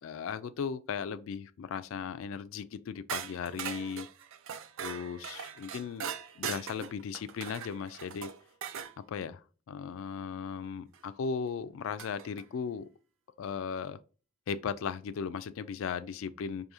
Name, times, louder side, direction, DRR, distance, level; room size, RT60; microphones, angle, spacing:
voice 1, 0.0-4.1 4.8-8.3 9.1-9.4 9.7-12.9 13.4-14.0 14.5-16.7, left 6 dB, 65° left, 0.3 m, -37 dB
sound 1, 3.1-8.9 10.9-11.0 12.0-12.4, right 8 dB, 60° right, 0.4 m, -40 dB
4.8 x 2.7 x 2.6 m
head